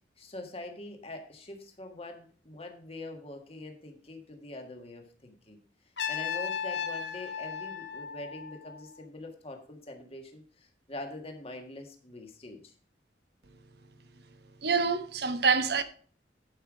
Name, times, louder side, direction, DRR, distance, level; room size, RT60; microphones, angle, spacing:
voice 1, 0.2-5.6 6.1-12.7, left 2 dB, 35° left, 1.7 m, -44 dB
Trumpet, 6.0-8.9, left 7 dB, 80° left, 1.2 m, -36 dB
voice 2, 14.6-15.8, right 5 dB, 65° right, 1.0 m, -26 dB
11.5 x 5.7 x 4.9 m
head